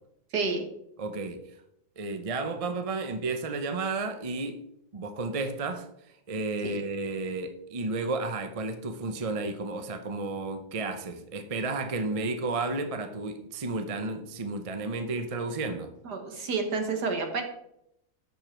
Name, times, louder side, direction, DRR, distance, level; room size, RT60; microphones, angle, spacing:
voice 1, 0.3-0.7 6.6-6.8 16.1-17.4, right 4 dB, 65° right, 2.0 m, -29 dB
voice 2, 1.0-1.4 2.0-4.6 4.9-5.9 6.3-15.9, right 3 dB, 40° right, 0.5 m, -32 dB
13.0 x 5.1 x 4.5 m
omnidirectional pair, 1.9 m